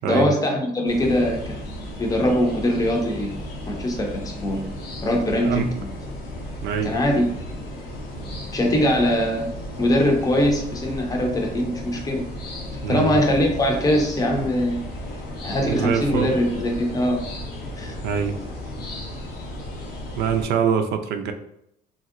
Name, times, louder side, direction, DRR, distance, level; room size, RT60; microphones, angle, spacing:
voice 1, 0.0-3.3 3.7-4.6 5.0-5.9 6.8-7.2 8.5-12.2 12.9-14.8 15.4-17.2 17.8-17.9, left 1 dB, 20° left, 1 dB, 0.6 m, -22 dB
sound 1, 0.9-20.4, left 1 dB, 70° left, 0.7 m, -34 dB
voice 2, 6.6-7.0 12.8-13.2 15.6-16.3 18.0-18.3 20.2-21.3, right 7 dB, 75° right, 6 dB, 0.4 m, -24 dB
3.0 x 2.7 x 2.4 m, 0.76 s
cardioid pair, 110°, 17 cm